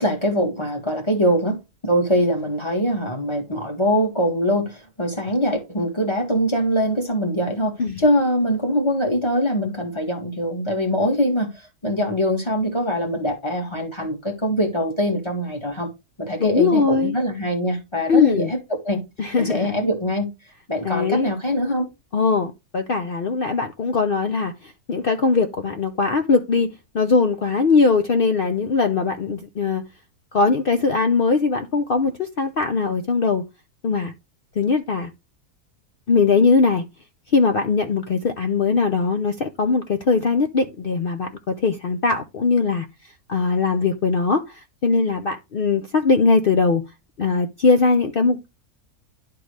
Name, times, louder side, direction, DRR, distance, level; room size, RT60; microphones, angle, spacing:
voice 1, 0.0-1.6 1.8-15.9 16.2-19.0 19.4-20.3 20.7-21.9, equal, 20° left, 2.1 m, -23 dB
voice 2, 16.4-17.2 18.1-18.5 19.2-19.7 20.8-21.3 22.1-29.8 30.3-33.4 33.8-34.1 34.6-35.1 36.1-36.9 37.3-42.9 43.3-46.8 47.2-48.5, left 4 dB, 55° left, 0.6 m, -20 dB
11.5 x 3.9 x 3.2 m
omnidirectional pair, 1.5 m